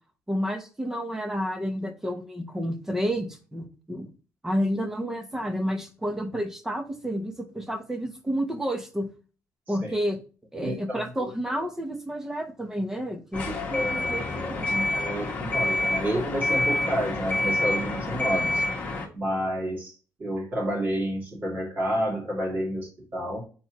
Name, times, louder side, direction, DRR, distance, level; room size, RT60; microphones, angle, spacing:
voice 1, 0.3-4.1 4.4-9.1 9.7-10.2 10.5-14.9, equal, 10° right, 6 dB, 0.9 m, -30 dB
voice 2, 9.7-10.0 10.6-11.0 13.7-14.1 14.9-18.6 19.1-19.9 20.2-23.4, equal, 30° right, -3 dB, 2.7 m, -29 dB
sound 1, 13.3-19.1, left 2 dB, 25° left, 1.6 m, -27 dB
8.0 x 4.3 x 3.0 m, 0.36 s
cardioid pair, 165°, 6 cm